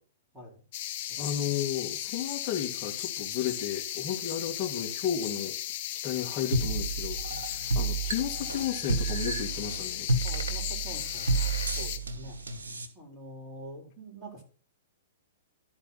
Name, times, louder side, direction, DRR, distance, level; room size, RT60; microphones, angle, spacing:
sound 1, 0.7-12.0, left 12 dB, 50° left, 0.8 m, -36 dB
voice 1, 1.2-5.6 5.9-10.1, left 9 dB, 30° left, 2.4 m, -33 dB
sound 2, 6.5-12.9, right 3 dB, 80° right, 1.2 m, -31 dB
voice 2, 10.2-12.4 12.9-14.4, right 1 dB, 10° right, 4.0 m, -45 dB
12.5 x 4.3 x 5.8 m
figure-of-eight pair, 110°, 0 cm